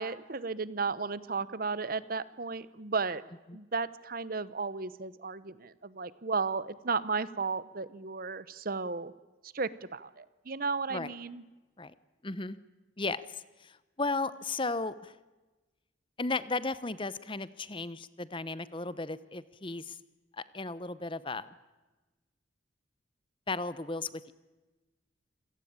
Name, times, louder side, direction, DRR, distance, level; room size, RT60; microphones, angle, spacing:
voice 1, 0.0-3.2 3.5-9.1 9.4-11.4, right 4 dB, 50° right, 17 dB, 0.9 m, -34 dB
voice 2, 12.2-12.6 13.0-15.2 16.2-20.0 20.4-21.5 23.5-24.3, left 3 dB, 25° left, 16 dB, 0.9 m, -35 dB
27.0 x 18.0 x 8.8 m, 1.2 s
head